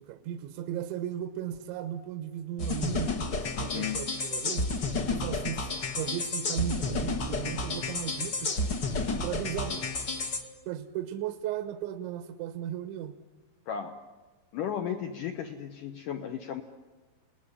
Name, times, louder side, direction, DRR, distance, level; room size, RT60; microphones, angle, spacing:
voice 1, 0.0-3.1 3.6-4.7 5.1-5.7 6.0-8.5 9.2-9.8 10.7-13.1, right 11 dB, 85° right, 10 dB, 3.4 m, -36 dB
sound 1, 2.6-10.4, left 3 dB, 55° left, 1.2 m, -31 dB
voice 2, 3.5-4.0 13.7-13.9 14.5-16.6, left 8 dB, 75° left, 6 dB, 1.9 m, -35 dB
28.5 x 19.5 x 10.0 m, 1.3 s
omnidirectional pair, 5.2 m